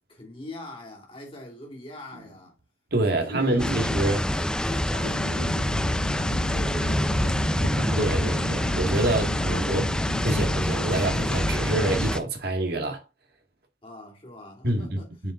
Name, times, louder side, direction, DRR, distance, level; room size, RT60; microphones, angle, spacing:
voice 1, 0.1-2.5 3.1-3.8 4.2-5.8 6.1-8.6 9.0-10.0 13.8-15.1, left 1 dB, 30° left, 3.1 m, -42 dB
sound 1, 2.1-2.5 2.9-3.0 3.3-4.3 5.0-5.7 6.0-6.1 6.6-6.7 6.9-8.8 9.2-9.3, right 2 dB, 85° right, 1.4 m, -35 dB
voice 2, 2.9-4.3 8.0-9.9 10.2-13.0 14.6-15.0 15.2-15.3, right 2 dB, 50° right, 1.9 m, -26 dB
sound 2, 3.6-12.2, equal, 5° left, 0.5 m, -26 dB
sound 3, 5.0-12.1, left 3 dB, 85° left, 0.6 m, -37 dB
7.1 x 7.1 x 2.5 m
head